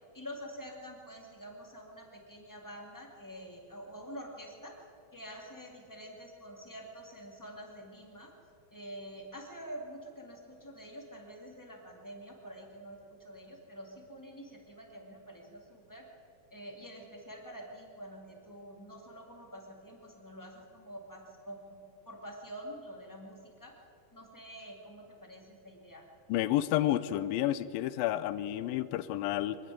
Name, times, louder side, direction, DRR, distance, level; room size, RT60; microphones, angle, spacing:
voice 1, 0.1-4.8 5.1-8.3 8.7-16.1 16.5-23.7 24.1-26.0, equal, 10° left, 1 dB, 1.1 m, -47 dB
voice 2, 26.3-29.6, left 13 dB, 80° left, 15 dB, 2.3 m, -30 dB
24.0 x 12.0 x 9.2 m, 2.6 s
omnidirectional pair, 4.4 m